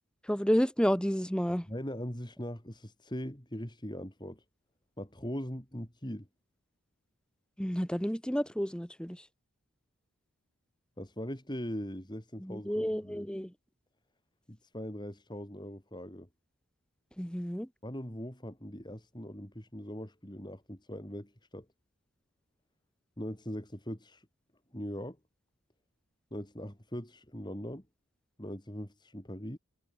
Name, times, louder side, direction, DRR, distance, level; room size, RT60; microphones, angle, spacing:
voice 1, 0.2-1.7 7.6-9.2 12.4-13.5 17.2-17.7, equal, 5° left, 1.5 m, -30 dB
voice 2, 1.7-4.4 5.0-6.3 11.0-13.3 14.5-16.3 17.8-21.7 23.2-24.3 24.7-25.2 26.3-27.8 28.4-29.6, equal, 20° left, 3.8 m, -40 dB
head